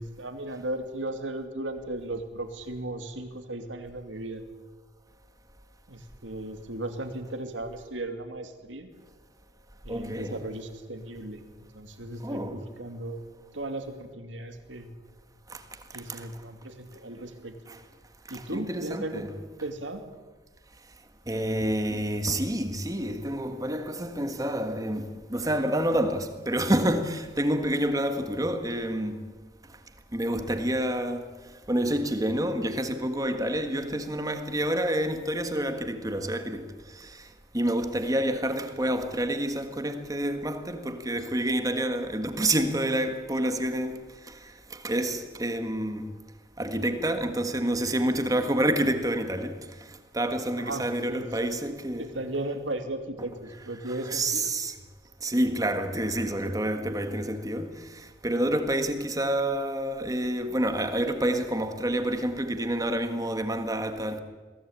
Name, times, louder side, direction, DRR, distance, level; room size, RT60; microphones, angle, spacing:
voice 1, 0.0-4.4 5.9-8.9 9.8-11.4 11.7-13.2 13.5-14.9 15.9-17.5 18.3-19.2 19.6-20.0 50.6-54.5, right 1 dB, 90° right, 2.6 m, -36 dB
voice 2, 9.9-10.4 12.2-12.6 15.5-15.6 16.1-16.2 17.7-17.8 18.3-19.3 21.3-29.2 30.1-31.2 31.7-36.7 37.0-37.2 37.5-44.0 44.3-44.4 44.7-46.1 46.6-49.7 50.1-52.0 54.1-54.7 55.2-64.2, right 1 dB, 20° right, 1.6 m, -28 dB
22.5 x 17.0 x 8.7 m
head